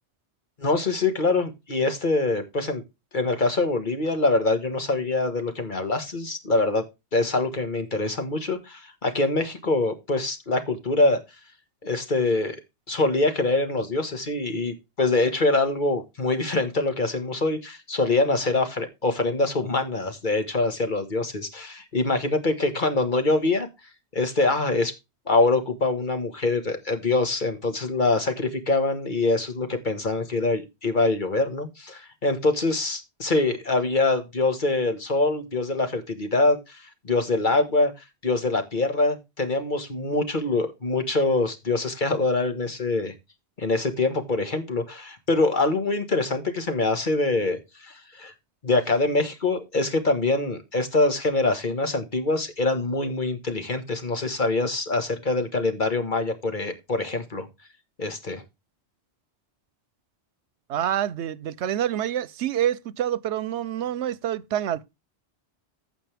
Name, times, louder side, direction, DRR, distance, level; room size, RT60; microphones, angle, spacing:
voice 1, 0.6-2.8 3.1-6.8 7.1-11.2 11.8-12.6 12.9-23.7 24.1-24.9 25.3-37.9 38.2-43.1 43.6-48.3 48.6-57.5 58.0-58.4, left 2 dB, 45° left, 1.7 m, -24 dB
voice 2, 60.7-64.8, right 11 dB, 90° right, 1.0 m, -27 dB
15.0 x 5.4 x 3.4 m
omnidirectional pair, 1.1 m